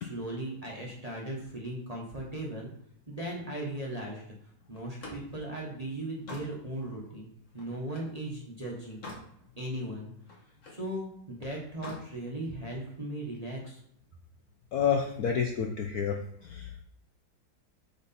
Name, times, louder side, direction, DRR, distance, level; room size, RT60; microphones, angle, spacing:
voice 1, 0.0-2.7 3.1-4.2 4.7-7.3 7.5-9.0 9.6-10.1 10.7-13.8, right 1 dB, 25° right, -2 dB, 1.0 m, -37 dB
Slam, 4.7-8.2 8.6-9.3 9.7-10.9 11.6-12.1, left 2 dB, 40° left, 1.8 m, -46 dB
voice 2, 14.7-16.7, left 7 dB, 65° left, 3 dB, 0.9 m, -29 dB
8.7 x 3.9 x 4.2 m, 0.72 s
omnidirectional pair, 2.2 m